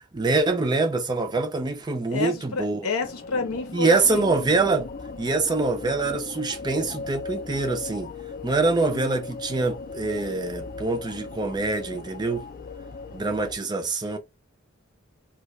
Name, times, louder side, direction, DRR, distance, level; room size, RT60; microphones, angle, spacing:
voice 1, 0.1-2.8 3.7-4.9 5.2-8.1 8.4-12.5 13.1-14.2, right 3 dB, 20° right, 0.4 m, -25 dB
voice 2, 2.1-4.3, left 4 dB, 80° left, 0.7 m, -29 dB
sound 1, 3.0-13.6, left 4 dB, 40° left, 0.4 m, -38 dB
2.3 x 2.1 x 3.0 m
head